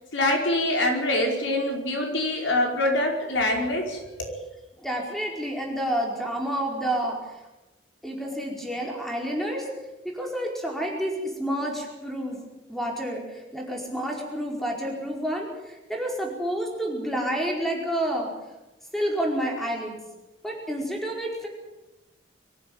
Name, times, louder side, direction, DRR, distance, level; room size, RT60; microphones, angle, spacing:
voice 1, 0.1-4.3, left 1 dB, 80° left, 2 dB, 5.0 m, -25 dB
voice 2, 4.8-7.4 8.0-9.7 10.0-18.3 18.9-20.0 20.4-21.5, right 1 dB, ahead, 0 dB, 4.8 m, -29 dB
23.5 x 14.5 x 9.3 m, 1.0 s
head